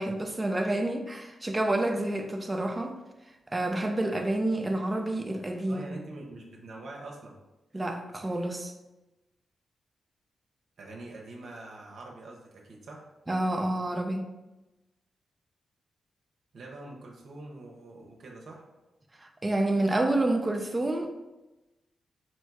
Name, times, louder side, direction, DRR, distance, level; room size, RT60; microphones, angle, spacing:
voice 1, 0.0-3.0 3.5-5.9 7.7-8.7 13.3-14.3 19.2-21.1, right 1 dB, 25° right, 0.6 m, -28 dB
voice 2, 5.7-7.4 10.8-13.1 16.5-18.7, right 2 dB, 70° right, 0.8 m, -44 dB
4.4 x 2.2 x 4.6 m
hypercardioid pair, 40°, 0 cm